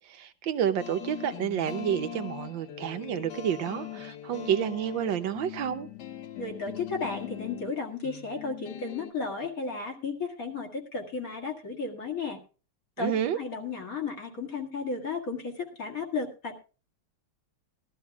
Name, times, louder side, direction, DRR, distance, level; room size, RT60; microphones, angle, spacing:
voice 1, 0.1-5.9 13.0-13.4, right 9 dB, 65° right, 1.5 m, -29 dB
sound 1, 0.8-9.1, left 11 dB, 60° left, 1.3 m, -41 dB
voice 2, 6.4-12.4 13.0-16.5, left 4 dB, 40° left, 2.3 m, -34 dB
20.0 x 12.5 x 2.3 m
omnidirectional pair, 2.4 m